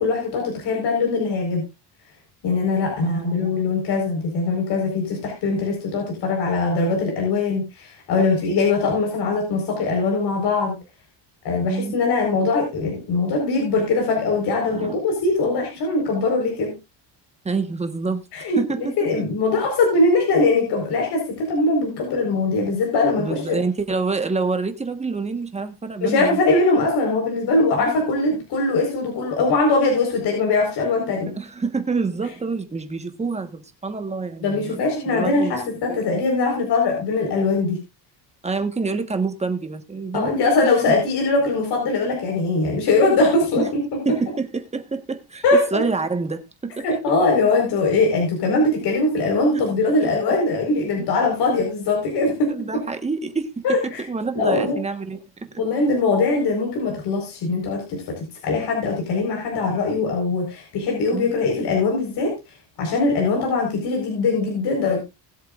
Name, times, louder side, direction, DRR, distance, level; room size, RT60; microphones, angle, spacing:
voice 1, 0.0-1.6 2.4-10.7 11.4-16.8 18.3-18.6 19.0-23.6 26.0-31.3 34.4-37.8 40.1-43.8 45.4-45.8 46.8-52.5 53.6-54.0 54.3-54.8 55.6-62.3 62.8-65.0, left 3 dB, 65° left, 4.7 m, -21 dB
voice 2, 3.0-3.6 11.6-12.0 14.7-14.9 17.4-19.3 23.2-26.4 27.8-28.0 31.3-34.8 35.1-35.6 35.9-36.0 38.4-40.5 43.6-43.7 44.0-45.4 45.7-47.1 49.5-49.6 50.0-50.1 52.5-55.2 55.5-55.6 61.1-61.4, right 4 dB, 15° right, 1.3 m, -27 dB
20.0 x 7.9 x 2.5 m
cardioid pair, 160°, 42 cm